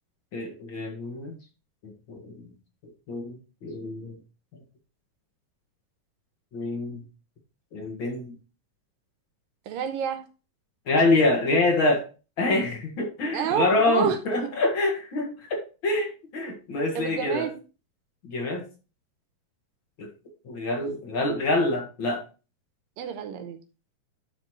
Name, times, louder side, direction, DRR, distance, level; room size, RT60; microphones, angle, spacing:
voice 1, 0.3-1.4 1.8-2.3 3.1-3.4 3.6-4.1 6.5-7.0 7.7-8.3 10.9-12.0 12.4-17.5 18.2-18.6 20.0-20.1 20.5-22.2, left 2 dB, 50° left, 0 dB, 1.6 m, -26 dB
voice 2, 9.7-10.2 13.3-14.5 16.4-16.6 17.0-17.6 23.0-23.6, right 10 dB, 75° right, 8 dB, 2.3 m, -30 dB
12.0 x 4.1 x 3.1 m, 0.32 s
omnidirectional pair, 4.5 m